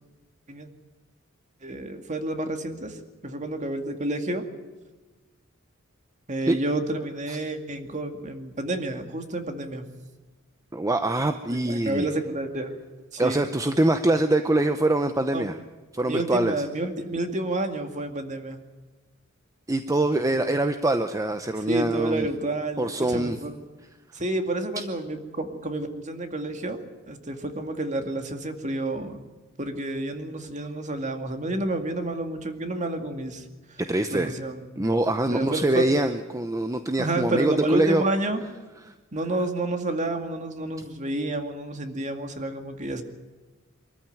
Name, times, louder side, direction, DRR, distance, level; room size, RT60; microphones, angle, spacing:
voice 1, 1.6-4.5 6.3-9.9 11.5-12.8 13.1-13.5 15.3-15.5 16.1-18.6 21.6-23.6 24.1-26.8 27.1-29.2 29.6-33.8 34.1-34.7 35.3-35.8 37.0-38.4 39.1-43.0, right 2 dB, 35° right, 6 dB, 2.2 m, -30 dB
voice 2, 10.7-12.1 13.2-15.5 15.9-16.6 19.7-22.3 22.8-23.4 33.8-34.3 34.8-38.0, right 1 dB, 15° right, 8 dB, 0.7 m, -24 dB
24.0 x 13.5 x 9.2 m, 1.3 s
head